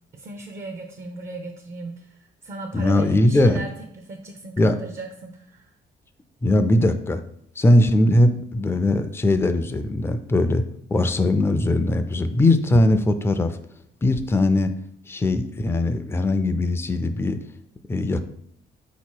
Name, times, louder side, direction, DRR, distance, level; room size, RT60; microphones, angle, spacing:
voice 1, 0.1-5.7, right 2 dB, 40° right, 4 dB, 0.5 m, -37 dB
voice 2, 2.7-3.6 4.6-4.8 6.4-7.2 7.6-10.6 10.9-13.6 14.0-14.7 15.1-17.4 17.9-18.2, left 1 dB, 10° left, 9 dB, 0.4 m, -20 dB
4.0 x 2.9 x 4.5 m, 0.70 s
cardioid pair, 90°, 20 cm